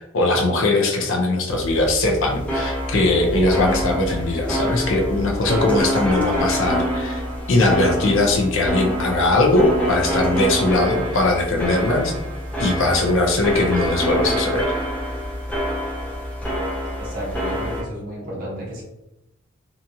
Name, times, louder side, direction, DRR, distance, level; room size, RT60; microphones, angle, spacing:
voice 1, 0.1-7.2 7.5-12.1 12.6-14.7, left 2 dB, 60° left, 1 dB, 0.5 m, -20 dB
sound 1, 1.5-17.8, equal, 5° left, 0.6 m, -26 dB
voice 2, 17.0-18.8, equal, 40° right, -5 dB, 1.0 m, -32 dB
2.8 x 2.3 x 2.6 m, 0.91 s
head